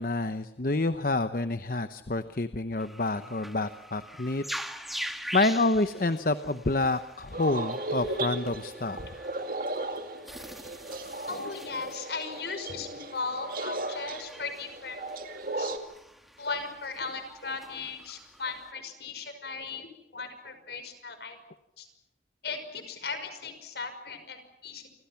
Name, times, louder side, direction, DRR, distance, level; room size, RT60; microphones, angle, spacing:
voice 1, 0.0-4.4 5.3-9.2, left 2 dB, 50° left, 10 dB, 0.9 m, -28 dB
sound 1, 2.8-18.7, equal, ahead, 1.6 m, -44 dB
sound 2, 7.3-15.8, right 2 dB, 50° right, 2.3 m, -36 dB
voice 2, 11.3-15.0 15.6-15.7 16.4-19.9 20.1-21.4 21.8-21.9 22.4-24.9, left 4 dB, 70° left, 8 dB, 5.6 m, -37 dB
28.5 x 26.0 x 5.9 m, 0.89 s
head